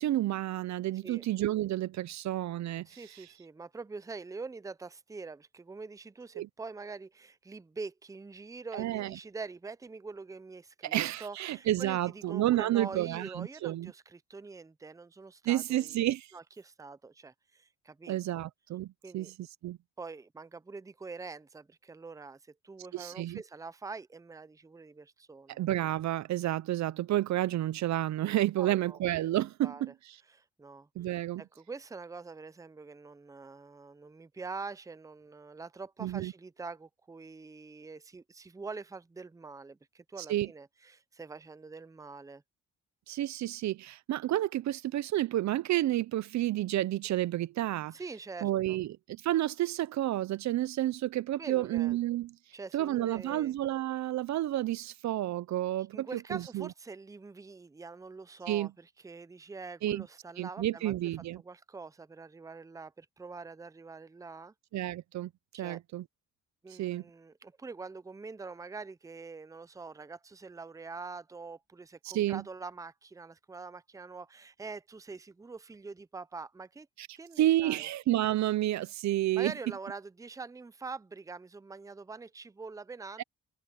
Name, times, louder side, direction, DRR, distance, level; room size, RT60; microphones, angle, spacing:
voice 1, 0.0-2.9 6.4-6.5 8.7-9.1 10.8-13.9 15.5-16.3 18.1-19.3 19.6-19.8 22.9-23.4 25.6-29.9 31.0-31.4 36.0-36.3 40.3-40.5 43.1-47.9 48.4-52.3 52.7-56.7 58.5-58.7 59.8-60.1 60.4-61.4 64.7-66.0 66.8-67.0 72.1-72.4 77.0-77.1 77.4-79.5 83.2-83.3, right 14 dB, 65° right, 0.6 m, -30 dB
voice 2, 2.9-16.0 16.3-18.2 19.0-19.3 20.0-25.6 28.6-29.0 29.6-29.8 30.3-30.9 31.4-42.4 47.9-48.8 51.4-52.0 52.5-53.5 55.8-60.9 61.4-64.5 65.5-65.8 66.6-76.9 77.1-77.9 79.3-83.2, right 4 dB, 10° right, 0.6 m, -45 dB
cardioid pair, 90°, 30 cm